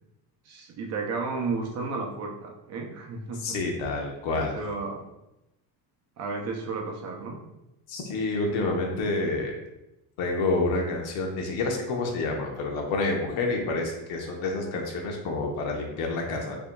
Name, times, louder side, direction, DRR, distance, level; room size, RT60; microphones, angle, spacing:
voice 1, 0.5-3.6 4.3-5.1 6.2-7.4 16.2-16.5, right 4 dB, 35° right, 1 dB, 0.5 m, -33 dB
voice 2, 3.4-4.5 7.9-9.6 10.2-16.6, left 3 dB, 75° left, 1 dB, 1.1 m, -28 dB
6.7 x 2.8 x 2.3 m, 0.91 s
cardioid pair, 165°, 45 cm